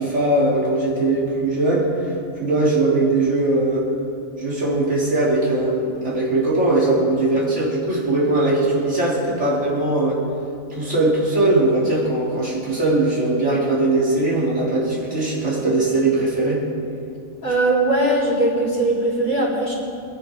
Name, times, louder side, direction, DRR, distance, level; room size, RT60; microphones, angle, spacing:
voice 1, 0.0-2.1 2.4-3.9 4.4-10.2 10.7-16.6, right 2 dB, 55° right, -7 dB, 3.8 m, -20 dB
voice 2, 17.4-19.7, right 2 dB, 85° left, -6 dB, 4.3 m, -20 dB
23.5 x 9.9 x 3.7 m, 2.5 s
omnidirectional pair, 1.4 m